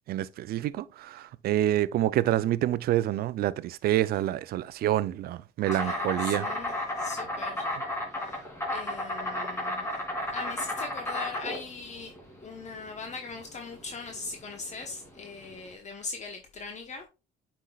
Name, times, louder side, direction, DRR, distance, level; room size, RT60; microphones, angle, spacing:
voice 1, 0.1-6.5, right 13 dB, 65° right, 0.5 m, -27 dB
voice 2, 5.7-7.7 8.2-8.4 8.7-9.9 10.3-12.1 12.4-17.1, left 4 dB, 45° left, 1.0 m, -40 dB
Insect, 5.7-15.7, left 1 dB, 15° left, 3.0 m, -33 dB
8.4 x 5.2 x 2.3 m
supercardioid pair, 85°, 17 cm